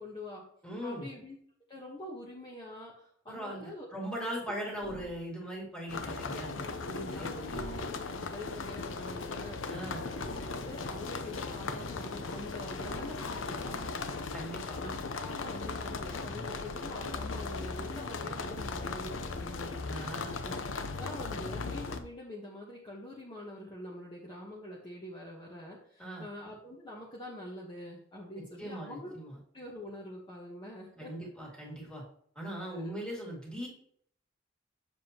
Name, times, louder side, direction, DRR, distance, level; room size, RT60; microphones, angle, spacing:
voice 1, 0.0-0.4 0.8-1.4 1.7-3.9 6.6-7.4 8.1-9.6 10.1-10.3 10.6-14.3 14.8-19.8 20.4-29.1 29.5-31.1 32.6-33.0, left 1 dB, 25° left, -4 dB, 1.1 m, -45 dB
voice 2, 0.6-1.1 3.3-7.6 9.7-10.1 14.3-14.8 19.9-20.5 26.0-26.3 28.6-29.4 31.0-32.0 32.4-33.7, equal, 5° left, -3 dB, 2.1 m, -40 dB
sound 1, 4.8-5.2 7.5-8.4 10.1-11.2 12.8-14.2, right 1 dB, 40° left, 2.0 m, -46 dB
sound 2, 5.9-22.0, left 4 dB, 85° left, 0.7 m, -38 dB
7.2 x 7.2 x 2.9 m, 0.63 s
head